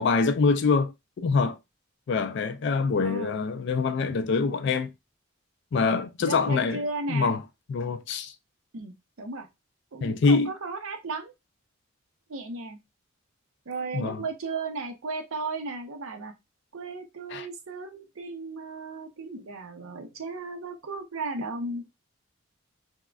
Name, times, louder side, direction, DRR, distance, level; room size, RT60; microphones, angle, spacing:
voice 1, 0.0-1.6 2.1-4.9 5.7-6.8 7.1-7.4 7.7-8.3 10.0-10.5 13.9-14.2 17.3-17.5, left 4 dB, 55° left, 0.3 m, -25 dB
voice 2, 3.0-3.4 6.2-7.3 8.7-9.5 9.9-11.3 12.3-12.8 13.7-16.3 16.7-21.9, right 3 dB, 80° right, 0.6 m, -35 dB
3.5 x 2.1 x 2.3 m
head